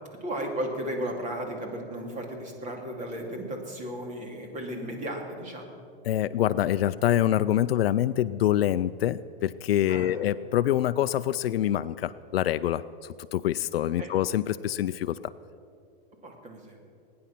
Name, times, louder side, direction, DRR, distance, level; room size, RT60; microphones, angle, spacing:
voice 1, 0.2-5.8 9.9-10.1 14.0-14.1 16.2-16.9, right 1 dB, 25° right, 2 dB, 2.7 m, -35 dB
voice 2, 6.1-15.2, left 12 dB, 90° left, 13 dB, 0.5 m, -26 dB
21.0 x 9.7 x 5.9 m, 2.5 s
hypercardioid pair, 135°, 29 cm